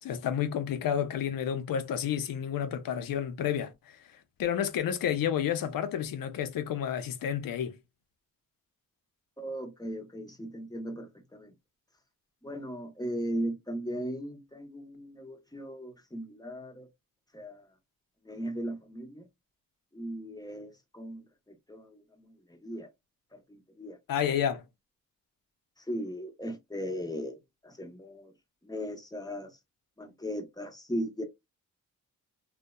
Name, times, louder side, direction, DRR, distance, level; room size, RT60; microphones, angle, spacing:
voice 1, 0.0-3.7 4.4-7.8 24.1-24.6, left 9 dB, 80° left, 0.6 m, -30 dB
voice 2, 9.4-11.5 12.4-16.9 17.3-17.7 18.2-19.3 19.9-22.9 23.3-24.0 25.8-28.3 28.6-29.5 30.0-31.2, equal, 10° left, 0.7 m, -38 dB
2.7 x 2.2 x 2.2 m
cardioid pair, 85°, 34 cm